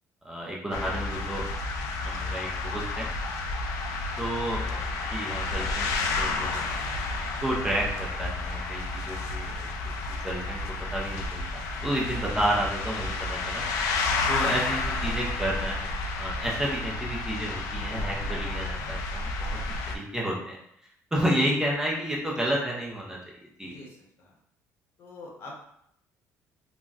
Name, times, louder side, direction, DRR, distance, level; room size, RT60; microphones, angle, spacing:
voice 1, 0.2-1.5 2.0-3.1 4.2-6.6 7.4-9.7 10.2-10.6 10.9-13.6 14.3-19.6 19.9-20.6 21.1-23.7, right 1 dB, 10° right, -3 dB, 0.4 m, -31 dB
sound 1, 0.7-20.0, left 3 dB, 85° left, 0.4 m, -31 dB
voice 2, 14.5-15.1 18.2-18.3 23.6-24.3 25.0-25.6, left 2 dB, 45° left, -1 dB, 0.7 m, -46 dB
3.8 x 2.0 x 2.3 m, 0.71 s
cardioid pair, 150°, 6 cm